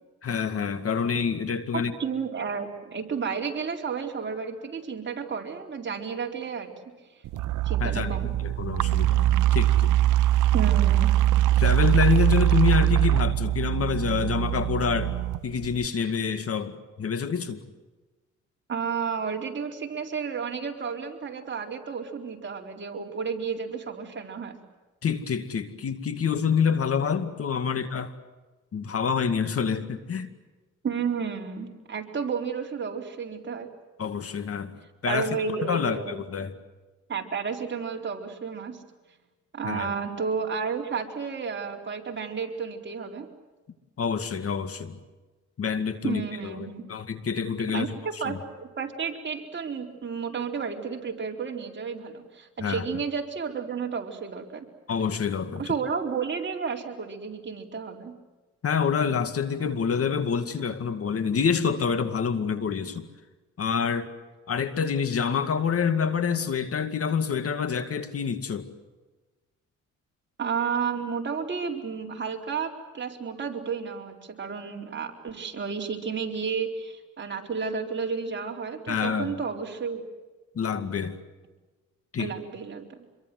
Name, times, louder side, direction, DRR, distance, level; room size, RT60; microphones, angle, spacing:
voice 1, 0.2-1.9 7.8-10.0 11.6-17.6 25.0-28.1 28.7-30.3 34.0-34.7 35.0-36.5 39.6-39.9 44.0-45.0 45.6-47.9 48.3-48.4 52.6-52.8 54.9-55.7 58.6-63.1 63.6-64.1 64.5-68.7 78.9-79.3 80.6-81.2 82.1-82.3, left 6 dB, 50° left, 10 dB, 2.2 m, -27 dB
voice 2, 1.7-6.7 7.6-8.3 10.5-11.1 18.7-24.6 30.8-33.7 35.0-36.2 37.1-38.8 39.5-43.3 46.0-46.8 47.7-54.7 55.6-58.1 70.4-80.0 82.2-83.0, right 6 dB, 40° right, 1 dB, 4.4 m, -32 dB
sound 1, 7.3-15.9, right 13 dB, 80° right, 0.9 m, -22 dB
27.0 x 23.0 x 7.9 m, 1.2 s
cardioid pair, 90°, 30 cm